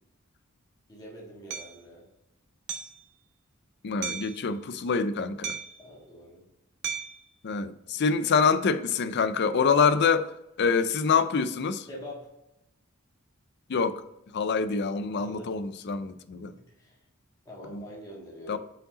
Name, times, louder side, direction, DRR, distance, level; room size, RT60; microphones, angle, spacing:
voice 1, 0.9-2.0 5.8-6.4 11.9-12.3 15.2-15.5 16.4-16.5 16.8-17.0 17.4-18.6, left 1 dB, 20° left, 1.7 m, -44 dB
Hammer, 1.5-1.7 2.7-3.0 4.0-4.4 5.4-5.8 6.8-7.2, right 7 dB, 55° right, 0.7 m, -35 dB
voice 2, 3.8-5.6 7.4-10.3 10.6-11.9 13.7-14.0 14.3-16.5 17.7-17.8 18.5-18.6, left 5 dB, 50° left, 0.5 m, -26 dB
5.4 x 5.1 x 3.9 m
head